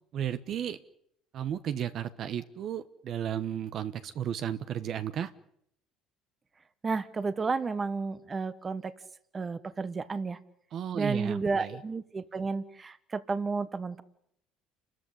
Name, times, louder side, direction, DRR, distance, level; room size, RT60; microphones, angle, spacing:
voice 1, 0.1-0.8 1.3-5.3 10.7-11.8, right 9 dB, 45° right, 12 dB, 1.1 m, -34 dB
voice 2, 6.8-8.9 9.3-10.4 10.9-14.0, right 4 dB, 20° right, 14 dB, 1.3 m, -32 dB
30.0 x 14.0 x 9.9 m, 0.72 s
cardioid pair, 150°, 0 cm